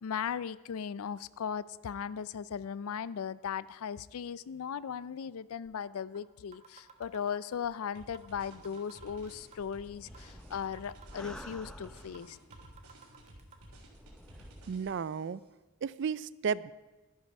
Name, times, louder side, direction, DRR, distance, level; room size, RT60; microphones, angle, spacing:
voice 1, 0.0-12.4, left 7 dB, 70° left, 19 dB, 0.4 m, -37 dB
sound 1, 5.6-5.7 6.1-6.2 6.5-7.7 8.1-8.3 8.5-9.7 10.1-10.2 10.5-11.7 12.1-12.3 12.5-13.6, right 6 dB, 30° right, 1.1 m, -54 dB
sound 2, 7.9-15.3, right 1 dB, 90° right, 3.4 m, -54 dB
Gas Mask breath, 9.6-12.5 13.2-15.0, equal, 5° left, 0.6 m, -51 dB
voice 2, 14.7-15.4 15.8-16.7, right 6 dB, 50° right, 20 dB, 0.3 m, -33 dB
12.5 x 11.0 x 5.4 m, 1.2 s
head